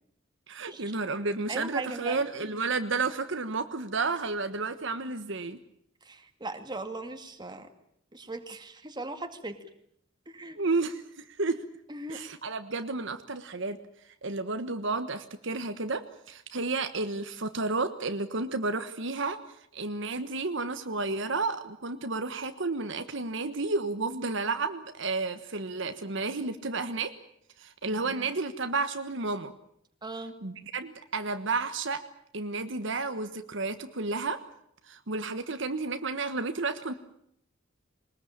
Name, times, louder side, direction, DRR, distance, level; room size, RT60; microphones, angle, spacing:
voice 1, 0.5-5.6 10.5-11.6 12.1-13.8 14.2-19.4 19.7-27.1 27.6-29.5 30.4-32.0 32.3-34.4 34.9-36.9, right 3 dB, 65° right, 9 dB, 1.4 m, -31 dB
voice 2, 1.5-2.2 6.0-7.7 8.1-9.7 10.3-10.6 11.9-12.2 27.9-28.3 30.0-30.3, right 2 dB, 20° right, 7 dB, 2.2 m, -39 dB
22.0 x 20.5 x 8.8 m, 0.71 s
head